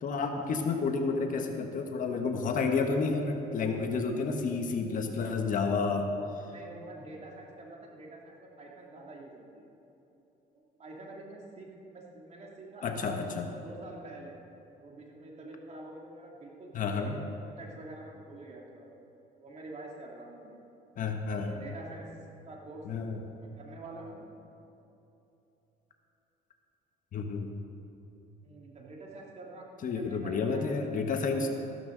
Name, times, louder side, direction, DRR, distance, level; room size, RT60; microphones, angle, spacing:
voice 1, 0.0-6.1 12.8-13.5 16.7-17.2 21.0-21.5 22.8-23.2 27.1-27.5 29.8-31.5, left 4 dB, 50° left, 4 dB, 1.3 m, -30 dB
voice 2, 6.0-9.7 10.5-13.2 13.6-14.4 14.8-19.0 19.4-20.6 21.3-22.1 22.4-22.9 23.4-24.3 28.4-29.7 29.9-31.3, right 2 dB, 40° right, -2 dB, 2.8 m, -47 dB
14.5 x 13.0 x 3.9 m, 3.0 s
cardioid pair, 110°, 17 cm